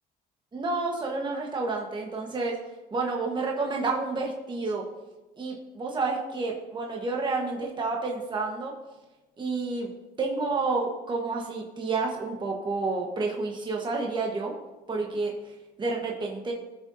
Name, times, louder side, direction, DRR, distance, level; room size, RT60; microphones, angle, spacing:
voice 1, 0.5-2.6 2.9-4.9 5.4-8.7 9.4-9.9 10.2-14.5 14.9-16.5, right 3 dB, 25° right, 0 dB, 1.2 m, -30 dB
16.5 x 6.5 x 2.7 m, 1.1 s
cardioid pair, 110°, 17 cm